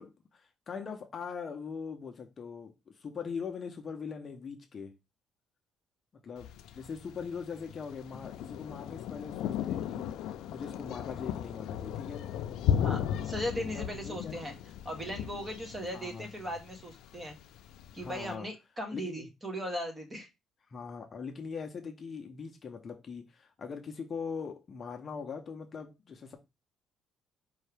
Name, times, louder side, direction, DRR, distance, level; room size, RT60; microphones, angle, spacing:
voice 1, 0.0-4.9 6.2-10.0 10.5-12.3 13.5-14.4 15.9-16.3 18.0-18.5 18.9-19.3 20.7-26.4, left 6 dB, 35° left, 0.7 m, -41 dB
Thunder, 6.4-18.3, left 9 dB, 80° left, 0.5 m, -36 dB
voice 2, 12.8-14.5 14.8-17.4 17.9-20.3, equal, 15° right, 1.0 m, -38 dB
4.7 x 2.7 x 3.3 m
cardioid pair, 140°, 0 cm